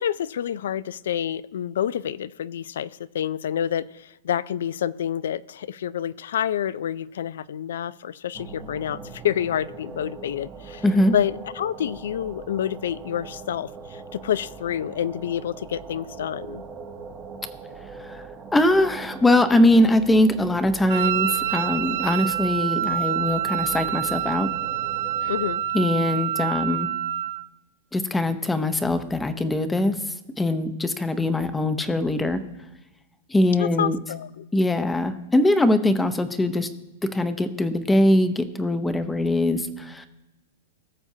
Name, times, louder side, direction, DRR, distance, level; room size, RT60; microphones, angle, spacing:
voice 1, 0.0-16.6 25.3-25.6 33.6-34.5, left 10 dB, 80° left, 19 dB, 0.3 m, -28 dB
sound 1, 8.3-25.6, right 4 dB, 20° right, 0.8 m, -41 dB
voice 2, 10.8-11.1 18.0-18.2 18.5-24.5 25.7-26.9 27.9-32.4 33.3-34.0 34.5-36.7 37.1-40.1, left 1 dB, 10° left, 11 dB, 0.6 m, -22 dB
Wind instrument woodwind instrument, 20.9-27.5, right 12 dB, 65° right, 0.3 m, -27 dB
18.5 x 7.0 x 2.7 m, 1.1 s
hypercardioid pair, 145°, 0 cm